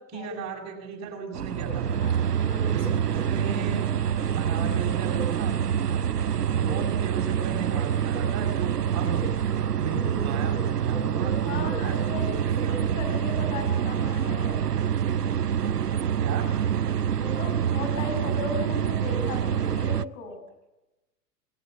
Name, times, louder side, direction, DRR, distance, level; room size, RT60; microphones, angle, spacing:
voice 1, 0.1-1.9 2.7-3.9 4.3-5.6 6.5-9.3 9.8-12.8 13.3-13.5 16.2-16.5 19.8-19.9, right 5 dB, 35° right, 1 dB, 7.5 m, -35 dB
sound 1, 1.3-20.1, right 8 dB, 90° right, 0.7 m, -26 dB
voice 2, 2.4-2.8 9.8-10.0 11.5-12.2 12.7-14.6 17.2-20.4, left 3 dB, 55° left, 4 dB, 7.2 m, -36 dB
20.5 x 18.0 x 7.9 m, 1.0 s
figure-of-eight pair, 100°, 46 cm